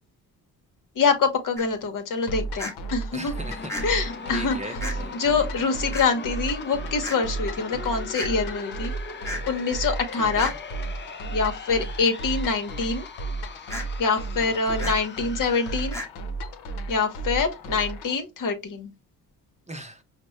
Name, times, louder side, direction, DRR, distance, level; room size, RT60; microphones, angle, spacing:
voice 1, 1.0-3.3 3.8-4.8 5.1-8.9 9.5-10.5 11.3-13.1 14.0-16.0 16.9-18.9, left 4 dB, 55° left, 1.1 m, -25 dB
sound 1, 1.6-1.7 2.6-2.7 3.7-3.8 4.8-4.9 5.9-6.1 7.0-7.2 8.1-8.3 9.2-9.4 10.4-10.5 13.7-13.8 14.8-15.0 15.9-16.1, left 1 dB, 5° left, 1.1 m, -32 dB
sound 2, 2.3-18.1, right 3 dB, 75° left, 0.8 m, -34 dB
voice 2, 3.1-5.1 10.2-10.5 14.4-14.9 17.7-17.9 19.7-20.0, right 1 dB, 20° right, 0.7 m, -39 dB
sound 3, 3.3-15.9, left 4 dB, 30° left, 0.7 m, -40 dB
5.1 x 2.2 x 3.1 m
supercardioid pair, 60°, 39 cm